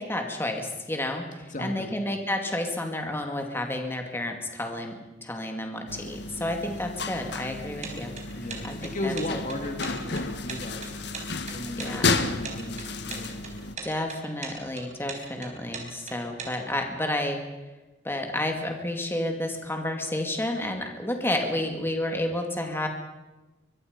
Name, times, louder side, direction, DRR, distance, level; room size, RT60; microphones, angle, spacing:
voice 1, 0.0-9.1 11.8-12.1 13.8-17.4 18.0-22.9, left 1 dB, 10° left, 3 dB, 2.4 m, -31 dB
voice 2, 1.5-2.0 8.3-11.0 11.5-13.4, left 1 dB, 45° left, 5 dB, 2.2 m, -35 dB
sound 1, 5.9-13.7, left 3 dB, 65° left, 1.5 m, -32 dB
sound 2, 7.8-16.5, right 5 dB, 40° right, 4.5 m, -39 dB
23.5 x 23.5 x 5.3 m, 1.1 s
head